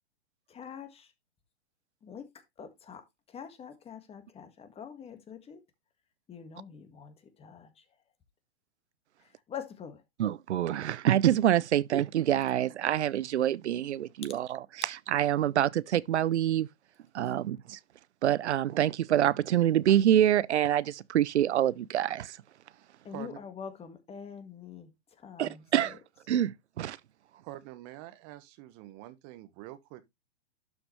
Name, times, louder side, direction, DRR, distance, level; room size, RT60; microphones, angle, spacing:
voice 1, 0.5-1.1 2.0-2.3 2.6-3.0 3.3-5.6 6.3-7.7 9.5-10.0 23.0-24.9 25.2-26.0, left 7 dB, 20° left, 1.7 m, -44 dB
voice 2, 10.2-16.7 17.1-17.8 18.2-22.4 25.4-26.0 26.3-27.0, right 11 dB, 90° right, 0.5 m, -26 dB
voice 3, 27.4-30.1, right 15 dB, 40° right, 1.3 m, -45 dB
12.0 x 5.8 x 3.1 m
hypercardioid pair, 125°, 33 cm